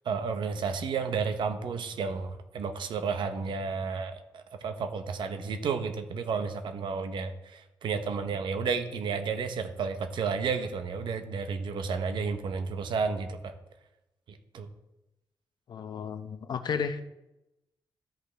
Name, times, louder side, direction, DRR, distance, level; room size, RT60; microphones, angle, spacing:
voice 1, 0.0-13.5 14.3-14.7, right 5 dB, 80° right, 8 dB, 0.9 m, -32 dB
voice 2, 15.7-17.0, left 6 dB, 60° left, 10 dB, 0.7 m, -33 dB
13.0 x 5.2 x 3.4 m, 0.93 s
cardioid pair, 115°, 8 cm